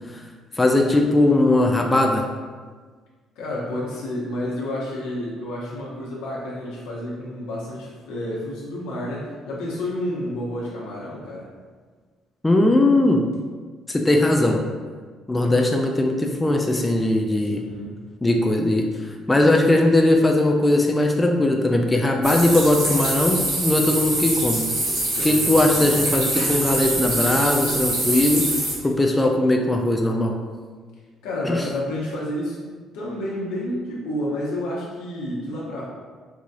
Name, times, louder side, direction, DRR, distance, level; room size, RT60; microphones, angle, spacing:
voice 1, 0.6-2.2 12.4-13.2 13.9-14.6 15.3-17.6 18.2-24.7 25.2-28.5 28.8-30.4 31.4-31.6, left 1 dB, 15° left, 2 dB, 0.4 m, -19 dB
voice 2, 3.4-11.5 17.5-17.9 25.2-25.9 31.2-32.7 32.9-35.8, left 1 dB, 85° left, -5 dB, 1.0 m, -30 dB
sound 1, 22.2-28.7, right 1 dB, 75° right, 1.3 m, -24 dB
4.7 x 2.7 x 2.5 m, 1.5 s
supercardioid pair, 70°, 0 cm